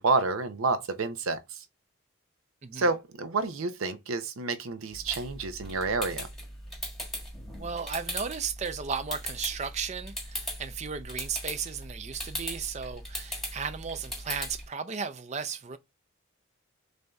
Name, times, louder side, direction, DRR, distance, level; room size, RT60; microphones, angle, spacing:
voice 1, 0.0-1.6 2.7-6.3, right 3 dB, 90° right, 0.6 m, -29 dB
sound 1, 4.9-14.7, equal, ahead, 1.3 m, -39 dB
voice 2, 7.5-15.8, right 6 dB, 35° right, 0.4 m, -35 dB
6.5 x 2.7 x 2.3 m
head